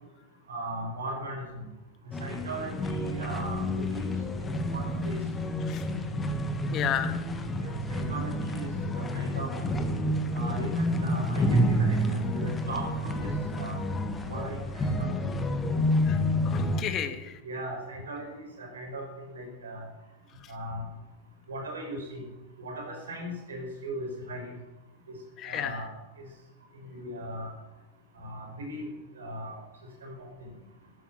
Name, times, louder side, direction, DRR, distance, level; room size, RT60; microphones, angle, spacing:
voice 1, 0.5-1.7 2.2-4.1 4.4-5.2 7.6-9.8 10.3-13.8 14.3-15.2 17.4-19.8 20.5-20.8 21.5-22.2 22.6-24.5 25.1-25.2 25.4-26.3 26.8-27.5 28.1-29.6 30.0-30.5, right 1 dB, 65° right, 2 dB, 5.3 m, -38 dB
sound 1, 2.1-16.8, equal, 15° left, 1.7 m, -29 dB
voice 2, 6.7-7.2 16.1-16.2 16.4-17.3 25.4-25.8, left 9 dB, 30° left, 9 dB, 1.8 m, -32 dB
12.5 x 12.0 x 8.8 m, 1.0 s
figure-of-eight pair, 90°, 0 cm